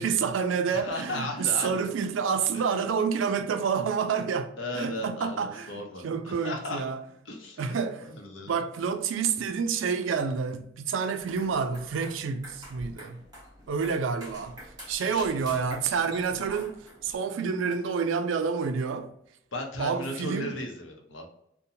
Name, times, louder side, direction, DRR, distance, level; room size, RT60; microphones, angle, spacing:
voice 1, 0.0-7.0 7.6-8.1 8.5-13.2 13.7-14.6 14.9-19.1 19.8-20.5, right 6 dB, 85° right, 0.4 m, -28 dB
voice 2, 0.7-1.8 2.5-2.8 4.6-6.8 7.3-7.7 8.0-8.6 14.9-15.6 19.5-21.3, left 1 dB, 80° left, 0.7 m, -36 dB
sound 1, 11.2-17.2, equal, 20° right, 1.2 m, -47 dB
2.8 x 2.1 x 2.6 m
head